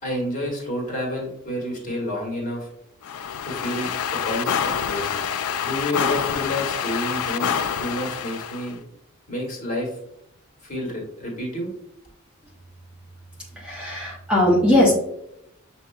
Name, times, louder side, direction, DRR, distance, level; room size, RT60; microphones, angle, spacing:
voice 1, 0.0-2.7 3.4-5.2 5.6-7.5 7.8-8.8 9.3-9.9 10.6-11.7, left 1 dB, 35° left, -2 dB, 1.4 m, -29 dB
sound 1, 3.0-8.7, left 7 dB, 90° left, 0.3 m, -27 dB
voice 2, 13.6-14.9, left 1 dB, 5° right, -5 dB, 0.7 m, -19 dB
6.6 x 2.7 x 2.2 m, 0.79 s
head